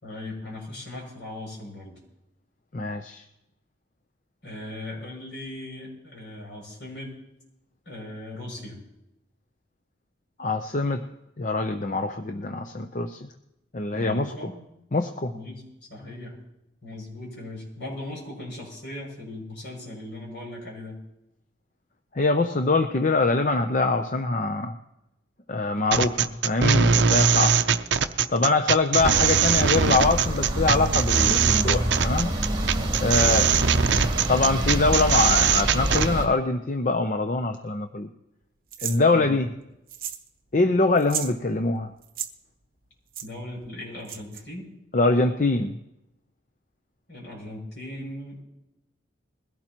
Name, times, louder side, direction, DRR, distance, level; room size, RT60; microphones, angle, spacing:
voice 1, 0.0-2.0 4.4-7.1 7.8-8.8 13.9-14.6 15.3-15.6 15.9-16.3 16.8-21.0 25.7-26.1 33.5-33.6 39.1-39.4 43.2-44.7 47.1-48.4, left 1 dB, 65° left, -2 dB, 6.6 m, -38 dB
voice 2, 2.7-3.2 10.4-11.0 11.4-13.2 13.7-14.5 14.9-15.3 22.1-24.7 25.5-27.6 28.3-32.3 33.0-33.5 34.3-38.1 38.8-39.5 40.5-41.9 44.9-45.8, left 3 dB, 40° left, 6 dB, 0.6 m, -24 dB
sound 1, 25.9-36.1, right 7 dB, 65° right, 0.6 m, -21 dB
sound 2, 29.0-36.2, right 1 dB, 25° right, 3.1 m, -27 dB
sound 3, 38.7-39.0 39.9-40.3 40.5-40.6 41.0-41.3 42.0-42.3 43.1-43.3 44.0-44.4, right 9 dB, 50° right, 1.0 m, -33 dB
21.5 x 16.5 x 3.0 m, 0.89 s
head